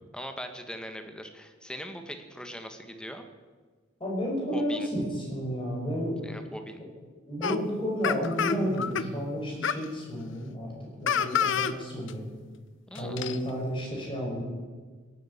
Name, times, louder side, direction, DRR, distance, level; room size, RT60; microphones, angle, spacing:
voice 1, 0.1-3.2 4.5-4.9 6.2-6.8 12.9-13.2, equal, 5° left, 6 dB, 1.4 m, -40 dB
voice 2, 4.0-6.2 7.3-10.7 11.0-12.3 12.9-14.4, equal, 25° left, -2 dB, 5.7 m, -31 dB
sound 1, 7.4-7.6 8.0-9.0 9.6-9.9 11.1-11.7 12.1-12.2 12.9-13.4, left 7 dB, 70° left, 0.7 m, -27 dB
17.0 x 9.6 x 8.3 m, 1.4 s
head